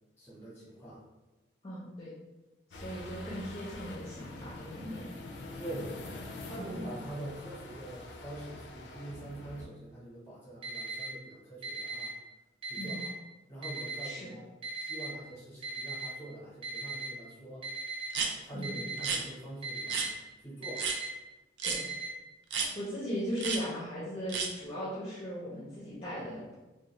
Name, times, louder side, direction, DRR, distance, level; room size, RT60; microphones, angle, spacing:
voice 1, 0.2-1.0 5.6-6.0 6.4-12.1 12.6-13.2 13.5-17.6 18.4-20.1 20.4-20.8, right 1 dB, 15° left, -7 dB, 0.9 m, -44 dB
voice 2, 1.6-2.1 2.7-5.0 6.6-7.1 12.8-13.0 14.0-14.3 18.5-18.8 21.6-21.8 22.7-26.5, equal, 30° left, -8 dB, 0.5 m, -38 dB
sound 1, 2.7-9.6, left 2 dB, 80° left, 0.4 m, -45 dB
Alarm, 10.6-11.1 11.6-12.1 12.6-13.1 13.6-14.1 14.6-15.1 15.6-16.1 16.6-17.1 17.6-18.1 18.6-19.1 19.6-20.1 20.6-21.1 21.6-22.1, right 5 dB, 30° right, 0.5 m, -38 dB
sound 2, 18.1-18.3 19.0-19.2 19.9-20.1 20.8-21.0 21.6-21.8 22.5-22.7 23.4-23.6 24.3-24.5, right 5 dB, 85° right, 0.4 m, -31 dB
2.4 x 2.2 x 3.0 m, 1.1 s
head